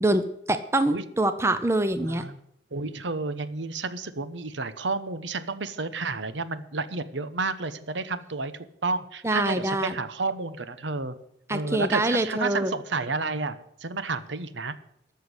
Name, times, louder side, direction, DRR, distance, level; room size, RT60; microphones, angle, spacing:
voice 1, 0.0-2.2 9.2-9.9 11.5-12.7, right 1 dB, 15° right, 11 dB, 0.7 m, -25 dB
voice 2, 2.0-2.4 2.7-8.5 8.8-11.2 11.5-14.8, right 3 dB, 85° right, 12 dB, 1.0 m, -31 dB
13.5 x 6.8 x 9.7 m, 0.72 s
head